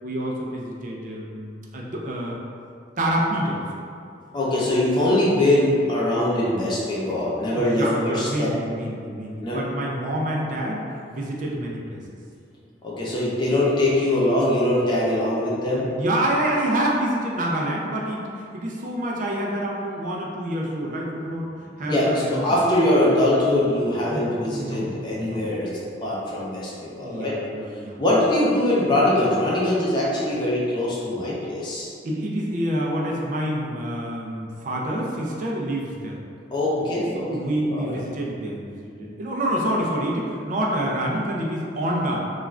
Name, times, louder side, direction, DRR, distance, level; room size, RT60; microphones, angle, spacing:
voice 1, 0.0-2.4 3.0-3.6 7.6-12.2 15.8-21.5 21.8-22.6 24.1-25.5 27.0-28.0 32.0-36.2 36.8-42.2, right 1 dB, 45° right, -2 dB, 0.4 m, -27 dB
voice 2, 4.3-8.5 9.4-9.6 12.8-15.9 21.9-27.4 28.0-31.9 36.5-38.0, left 1 dB, 25° left, -6 dB, 0.5 m, -22 dB
2.4 x 2.3 x 3.1 m, 2.4 s
head